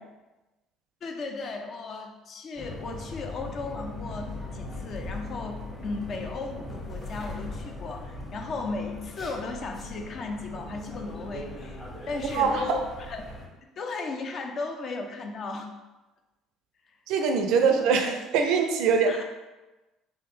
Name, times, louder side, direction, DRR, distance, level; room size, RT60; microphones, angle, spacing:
voice 1, 1.0-13.2 13.8-15.7 16.9-17.0 17.6-17.8 19.1-19.2, left 3 dB, 50° left, 4 dB, 0.5 m, -36 dB
sound 1, 2.6-13.5, left 2 dB, 30° left, 1.3 m, -39 dB
voice 2, 12.3-12.8 17.1-19.1, right 5 dB, 65° right, 4 dB, 0.4 m, -23 dB
3.5 x 2.5 x 3.2 m, 1.1 s
hypercardioid pair, 55°, 0 cm